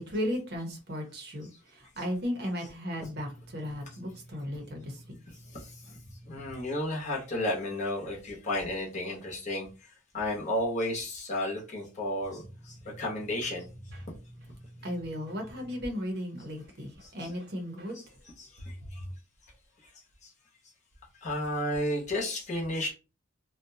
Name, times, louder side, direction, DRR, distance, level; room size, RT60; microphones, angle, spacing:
voice 1, 0.0-5.2 5.4-5.6 5.9-6.0 13.9-14.1 14.8-18.0 18.6-18.7 19.0-19.1, equal, 55° right, 0.8 m, -36 dB
voice 2, 5.3-5.7 6.3-13.7 17.0-17.3 18.4-19.0 20.2-20.3 21.2-22.9, left 1 dB, 35° left, 0.9 m, -33 dB
2.6 x 2.2 x 2.6 m
head